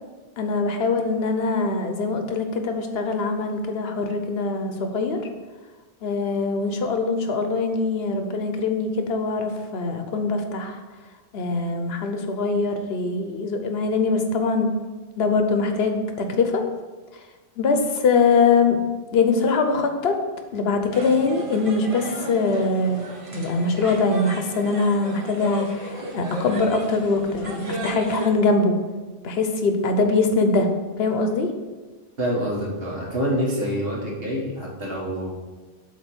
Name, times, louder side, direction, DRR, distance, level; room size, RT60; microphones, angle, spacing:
voice 1, 0.4-5.3 6.0-10.8 11.3-14.7 15.2-16.6 17.6-18.8 19.1-20.2 20.5-23.0 23.3-28.7 29.2-30.7 31.0-31.5, left 3 dB, 70° left, 6 dB, 1.0 m, -22 dB
sound 1, 20.9-28.3, right 2 dB, 35° right, 0.7 m, -34 dB
voice 2, 32.2-35.3, equal, 65° right, -3 dB, 1.8 m, -26 dB
7.6 x 3.0 x 6.0 m, 1.3 s
omnidirectional pair, 1.1 m